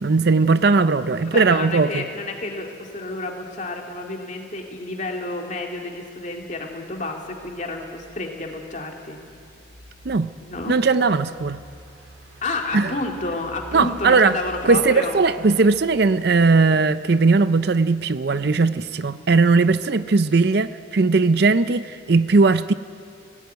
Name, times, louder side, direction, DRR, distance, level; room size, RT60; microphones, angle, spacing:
voice 1, 0.0-2.0 10.0-10.3 10.7-11.6 12.7-12.9 13.7-14.4 14.7-22.7, right 4 dB, 55° right, 14 dB, 0.5 m, -18 dB
voice 2, 1.3-9.2 10.4-10.8 12.4-15.2, left 2 dB, 40° left, 2 dB, 2.4 m, -30 dB
sound 1, 5.9-20.6, right 1 dB, 75° right, 2.8 m, -49 dB
18.0 x 18.0 x 9.4 m, 2.3 s
head